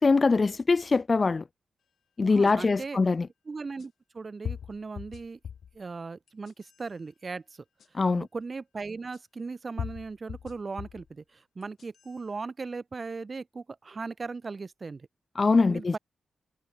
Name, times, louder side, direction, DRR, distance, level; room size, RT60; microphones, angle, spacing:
voice 1, 0.0-1.4 2.2-3.3 7.9-8.3 15.4-16.0, left 4 dB, 30° left, 0.7 m, -23 dB
voice 2, 2.2-3.0 3.5-5.4 5.7-7.6 8.1-15.1 15.7-16.0, right 4 dB, 30° right, 7.5 m, -38 dB
sound 1, 2.5-2.6 3.8-3.9 4.4-5.8 6.3-6.8 7.8-7.9 9.1-9.2 9.8-11.1 11.6-12.2, left 8 dB, 70° left, 4.6 m, -39 dB
wide cardioid pair, 145°, 0 cm